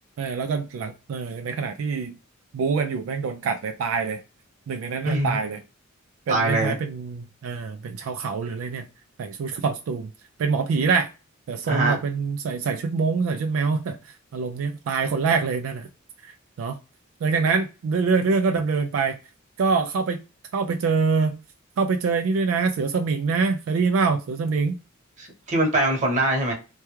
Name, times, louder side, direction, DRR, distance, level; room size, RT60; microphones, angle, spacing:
voice 1, 0.2-2.1 2.5-4.2 4.7-5.6 6.3-8.9 9.2-10.1 10.4-11.1 11.5-15.9 16.2-16.3 16.6-16.8 17.2-19.2 19.6-20.2 20.5-21.4 21.8-24.8, right 4 dB, 75° right, 0.3 m, -25 dB
voice 2, 5.0-5.4 6.3-6.7 11.7-12.0 25.2-26.5, right 1 dB, 40° right, 1.0 m, -23 dB
3.3 x 2.3 x 3.0 m
head